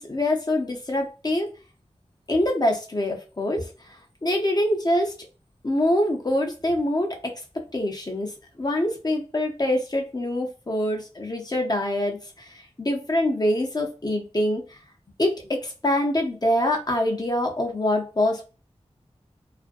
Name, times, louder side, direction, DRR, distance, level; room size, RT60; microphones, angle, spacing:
voice 1, 0.0-1.5 2.3-5.1 5.6-7.3 7.7-8.3 8.6-14.8 15.2-18.4, left 1 dB, 35° left, 2 dB, 0.7 m, -25 dB
2.5 x 2.2 x 2.5 m, 0.34 s
wide cardioid pair, 55°, 11 cm